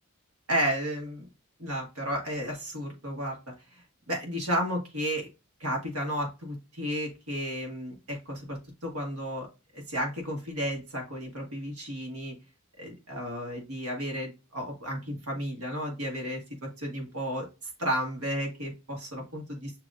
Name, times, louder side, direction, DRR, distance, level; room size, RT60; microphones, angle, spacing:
voice 1, 0.5-1.3 1.6-3.4 4.1-5.3 5.6-9.5 9.7-12.3 12.8-17.5 17.8-19.7, equal, 75° right, 1 dB, 1.5 m, -33 dB
7.3 x 2.8 x 2.4 m, 0.28 s
head